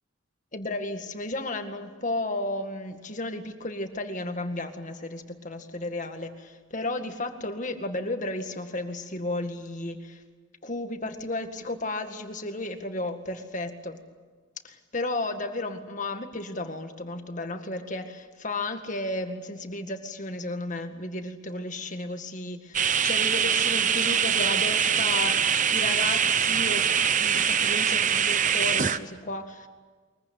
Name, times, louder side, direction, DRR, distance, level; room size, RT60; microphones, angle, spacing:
voice 1, 0.5-10.2 10.6-14.0 14.6-26.9 27.1-29.7, left 2 dB, 40° left, 6 dB, 1.9 m, -33 dB
sound 1, 22.7-29.0, right 7 dB, 40° right, 0.8 m, -23 dB
23.0 x 22.0 x 9.6 m, 1.5 s
head